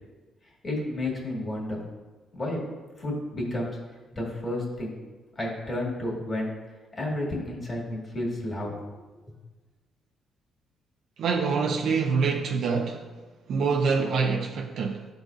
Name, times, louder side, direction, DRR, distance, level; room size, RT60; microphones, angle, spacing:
voice 1, 0.6-1.8 2.3-2.6 3.0-3.7 4.1-5.0 5.4-6.5 6.9-8.8, left 1 dB, 30° left, 2.0 m, -31 dB
voice 2, 11.2-13.1 13.5-15.1, right 5 dB, 70° right, 0.5 m, -25 dB
11.5 x 3.9 x 2.4 m
cardioid pair, 90°, 0 cm